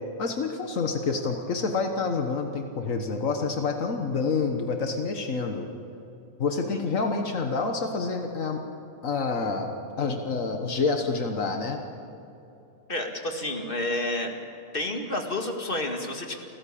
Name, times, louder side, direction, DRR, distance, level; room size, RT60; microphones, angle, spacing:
voice 1, 0.2-5.7 6.4-8.6 9.0-11.8, left 4 dB, 80° left, 4 dB, 1.7 m, -28 dB
voice 2, 12.9-14.3 14.7-16.3, left 1 dB, 45° left, 3 dB, 2.3 m, -30 dB
28.5 x 15.0 x 8.6 m, 2.8 s
omnidirectional pair, 1.3 m